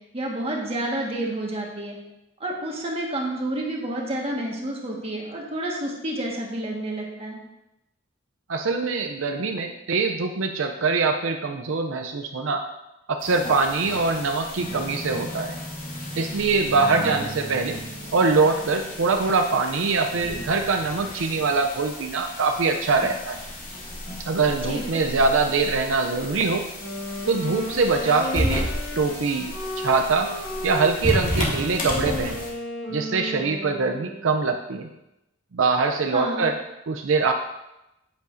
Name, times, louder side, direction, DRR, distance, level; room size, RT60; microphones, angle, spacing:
voice 1, 0.1-2.0 2.4-7.4 17.0-17.2 24.7-25.0 36.1-36.5, right 1 dB, 30° right, -1 dB, 1.6 m, -29 dB
voice 2, 8.5-12.6 13.1-15.6 16.2-17.8 18.1-23.4 24.2-26.7 27.3-28.7 29.0-30.3 30.6-32.4 32.9-34.9 35.5-36.6 36.9-37.3, right 4 dB, 75° right, 5 dB, 0.5 m, -23 dB
sound 1, 13.2-32.5, equal, 40° left, 2.2 m, -33 dB
Wind instrument woodwind instrument, 26.8-34.4, left 1 dB, 70° left, 1.7 m, -34 dB
9.7 x 8.1 x 2.6 m, 0.91 s
head